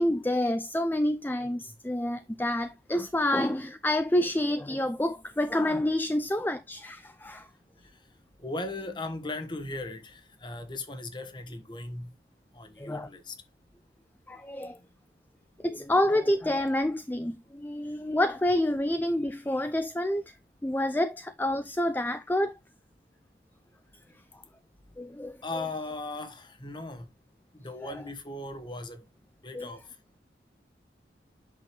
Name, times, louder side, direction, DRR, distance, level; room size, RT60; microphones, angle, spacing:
voice 1, 0.0-7.5 12.8-13.1 14.3-14.8 15.6-20.3 20.6-22.6 24.3-24.4 25.0-25.4 29.5-29.7, left 1 dB, 10° left, 0.5 m, -28 dB
voice 2, 8.4-12.1 12.5-13.4 25.4-27.1 27.6-29.0 29.4-29.8, left 2 dB, 25° left, 1.3 m, -38 dB
8.5 x 6.4 x 3.1 m
head